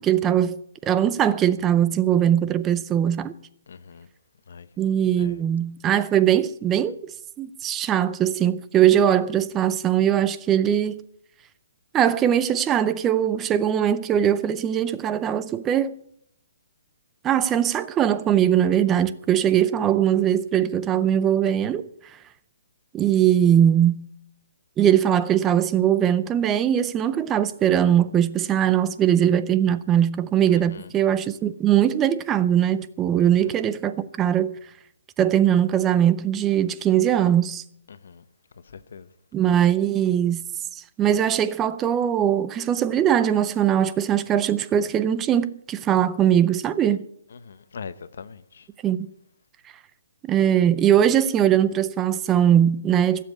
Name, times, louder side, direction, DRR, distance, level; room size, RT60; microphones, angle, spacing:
voice 1, 0.0-3.3 4.8-7.1 7.4-11.0 11.9-16.0 17.2-21.9 22.9-24.1 24.8-34.5 35.2-37.6 39.3-40.4 40.7-47.0 48.8-49.1 50.2-53.2, right 10 dB, 15° right, 0.5 m, -21 dB
voice 2, 3.7-4.1 4.5-4.7 5.2-5.4 30.5-30.9 33.2-33.5 37.9-38.2 38.7-39.1 47.3-48.7, left 6 dB, 70° left, 1.0 m, -41 dB
16.5 x 7.5 x 8.3 m
hypercardioid pair, 165°, 0 cm